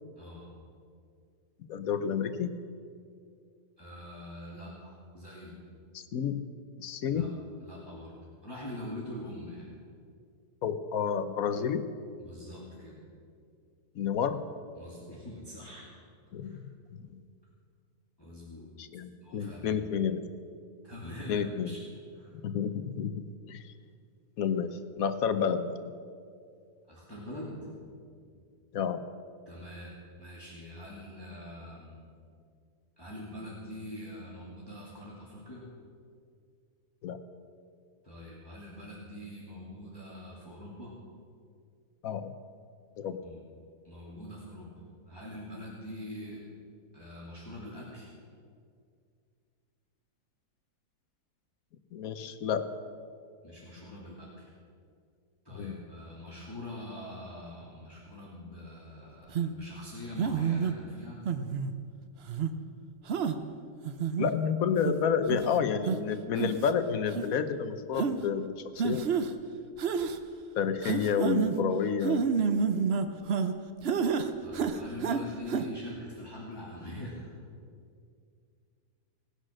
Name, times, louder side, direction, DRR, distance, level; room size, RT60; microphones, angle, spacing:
voice 1, 0.2-0.5 3.8-5.6 7.1-7.3 7.6-9.7 12.2-13.0 14.8-16.0 16.4-16.6 18.2-18.7 19.2-19.9 20.8-21.8 22.1-22.3 26.9-27.7 29.5-32.0 33.0-35.6 38.0-40.9 43.2-43.4 43.8-44.7 45.1-46.4 46.9-48.1 53.4-54.5 55.4-61.2 74.4-77.3, left 1 dB, 15° left, -6 dB, 2.4 m, -44 dB
voice 2, 1.7-2.5 5.9-6.4 6.8-7.3 10.6-11.8 13.9-14.4 16.3-17.2 18.8-20.2 21.3-21.7 22.3-23.2 23.5-23.7 24.4-25.9 28.7-29.0 37.0-37.2 42.0-42.3 43.0-43.2 51.9-52.7 55.5-55.8 64.2-69.1 70.6-72.2, left 7 dB, 65° left, 10 dB, 1.2 m, -30 dB
sound 1, 59.3-59.5 60.2-60.7 61.3-61.7 62.3-62.5 63.1-63.4 63.8-64.3 64.8-64.9 65.3-65.5 65.9-66.0 66.4-66.7 67.1-67.2 68.0-68.2 68.8-69.3 69.8-70.2 70.8-71.6 72.0-73.5 73.8-74.3 74.5-75.2 75.5-75.6, right 6 dB, 50° right, 0.8 m, -28 dB
18.0 x 10.5 x 6.4 m, 2.3 s
omnidirectional pair, 1.7 m